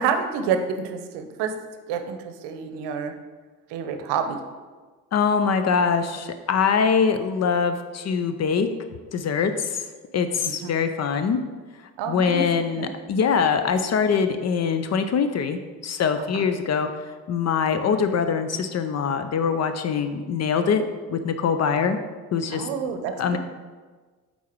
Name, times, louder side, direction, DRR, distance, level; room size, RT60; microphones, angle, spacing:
voice 1, 0.0-1.6 1.9-3.1 3.7-4.4 10.4-10.8 12.0-12.9 16.1-16.4 22.5-23.3, right 6 dB, 60° right, 8 dB, 0.9 m, -28 dB
voice 2, 5.1-8.7 9.1-9.8 10.1-11.4 12.1-16.9 17.3-20.8 21.1-22.0 22.3-22.7 23.2-23.4, left 6 dB, 35° left, 9 dB, 0.6 m, -23 dB
8.3 x 4.1 x 4.5 m, 1.4 s
hypercardioid pair, 55°, 47 cm